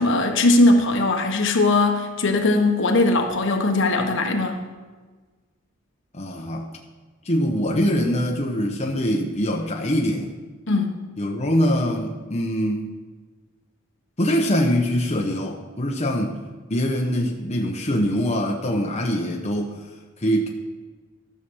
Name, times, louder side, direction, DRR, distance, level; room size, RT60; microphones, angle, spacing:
voice 1, 0.0-4.6 10.7-10.9, left 2 dB, 65° left, 3 dB, 1.3 m, -19 dB
voice 2, 6.1-6.7 7.2-10.3 11.2-12.9 14.2-16.4 16.7-19.8 20.2-20.5, equal, 35° left, 0 dB, 1.0 m, -23 dB
13.0 x 7.1 x 6.2 m, 1.3 s
head